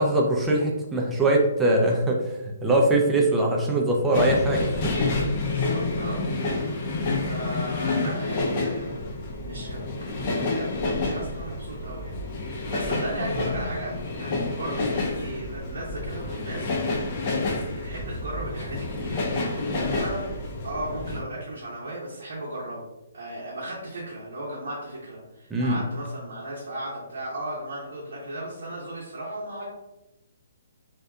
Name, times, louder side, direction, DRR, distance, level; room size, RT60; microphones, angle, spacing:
voice 1, 0.0-4.9 25.5-25.8, right 1 dB, 10° right, -1 dB, 0.4 m, -22 dB
sound 1, 4.1-21.2, left 2 dB, 40° left, 0.5 m, -29 dB
voice 2, 5.4-6.3 6.6-6.9 7.2-9.1 9.4-16.7 17.6-20.2 20.6-22.9 23.1-29.7, right 1 dB, 75° right, -5 dB, 0.7 m, -36 dB
2.7 x 2.3 x 2.3 m, 0.97 s
hypercardioid pair, 150°, 0 cm